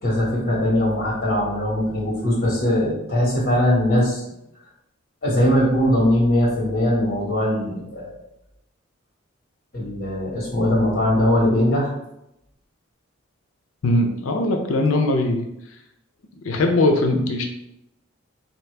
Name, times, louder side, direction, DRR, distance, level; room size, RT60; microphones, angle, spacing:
voice 1, 0.0-4.2 5.2-8.2 9.7-11.9, left 1 dB, 45° left, -4 dB, 1.5 m, -20 dB
voice 2, 13.8-15.4 16.4-17.5, left 2 dB, 85° left, 4 dB, 0.5 m, -20 dB
4.0 x 2.9 x 3.3 m, 0.83 s
head